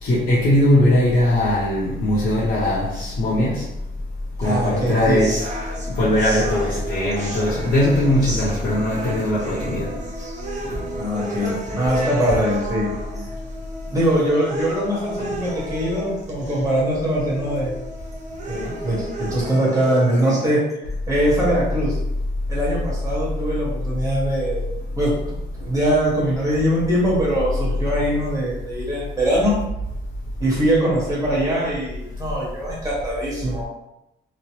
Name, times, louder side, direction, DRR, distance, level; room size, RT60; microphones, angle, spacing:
voice 1, 0.0-3.6 4.4-5.5 5.9-9.9, left 1 dB, 55° left, -9 dB, 0.8 m, -20 dB
voice 2, 4.4-5.2 11.0-13.2 13.9-17.7 18.5-20.8 21.1-22.0 22.5-24.6 25.0-25.1 25.6-29.6 30.4-33.6, right 1 dB, 15° right, -7 dB, 1.2 m, -22 dB
sound 1, 4.4-20.4, right 1 dB, 35° right, 0.6 m, -33 dB
3.0 x 2.0 x 3.0 m, 0.87 s
cardioid pair, 110°, 21 cm